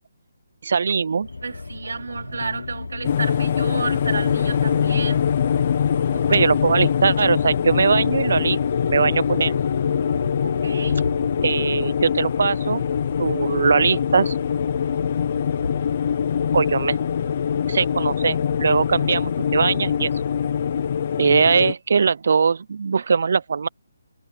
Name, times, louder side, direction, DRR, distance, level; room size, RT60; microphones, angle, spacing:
voice 1, 0.6-1.3 6.3-8.6 8.9-9.6 11.4-12.8 13.2-14.3 16.5-17.0 17.7-20.1 21.2-23.7, right 5 dB, 40° right, 0.5 m, -20 dB
sound 1, 1.2-21.0, left 3 dB, 80° left, 0.7 m, -32 dB
voice 2, 1.4-5.2 5.9-6.5 10.4-11.4, right 4 dB, 65° right, 3.5 m, -32 dB
sound 2, 3.0-21.7, left 8 dB, 25° left, 0.7 m, -23 dB
hypercardioid pair, 180°, 0 cm